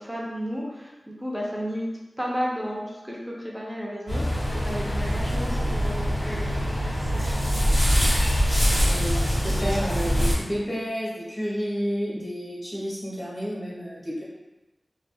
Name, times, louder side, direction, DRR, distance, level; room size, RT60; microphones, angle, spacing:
voice 1, 0.0-6.6 7.1-7.3 7.6-7.7, equal, ahead, -4 dB, 0.6 m, -33 dB
sound 1, 4.1-10.3, equal, 60° left, 1.1 m, -23 dB
voice 2, 8.8-14.2, equal, 30° left, -7 dB, 1.0 m, -30 dB
2.3 x 2.3 x 2.6 m, 1.0 s
wide cardioid pair, 75°, 0 cm